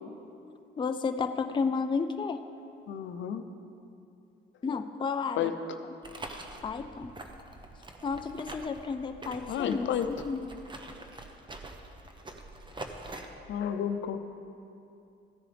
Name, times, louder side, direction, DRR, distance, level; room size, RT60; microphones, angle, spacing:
voice 1, 0.8-2.4 4.6-5.5 6.6-7.1 8.0-10.4, left 5 dB, 25° left, 8 dB, 0.4 m, -32 dB
voice 2, 2.9-3.4 5.4-5.8 9.5-10.1 13.5-14.2, left 9 dB, 75° left, 8 dB, 0.7 m, -31 dB
sound 1, 6.0-13.3, right 2 dB, 25° right, 0.9 m, -45 dB
15.5 x 9.9 x 3.4 m, 2.7 s
cardioid pair, 90°, 20 cm